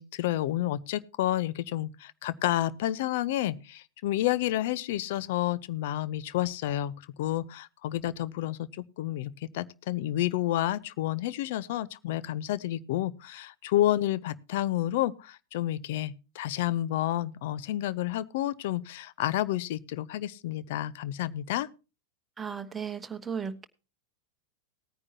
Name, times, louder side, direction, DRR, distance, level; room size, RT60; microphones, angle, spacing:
voice 1, 0.0-21.7, left 14 dB, 50° left, 0.7 m, -30 dB
voice 2, 22.4-23.6, right 6 dB, 15° right, 1.2 m, -35 dB
18.5 x 9.7 x 2.7 m
figure-of-eight pair, 90°, 0 cm